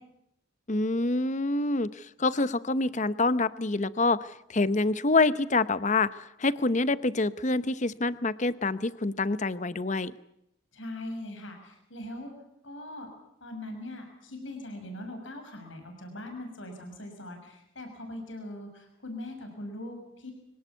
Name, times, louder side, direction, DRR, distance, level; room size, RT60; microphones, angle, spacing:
voice 1, 0.7-10.1, left 3 dB, 35° left, 16 dB, 0.8 m, -26 dB
voice 2, 10.7-12.3 12.6-13.1 13.4-20.3, left 1 dB, 70° left, 4 dB, 6.3 m, -41 dB
24.5 x 18.0 x 8.3 m, 0.79 s
head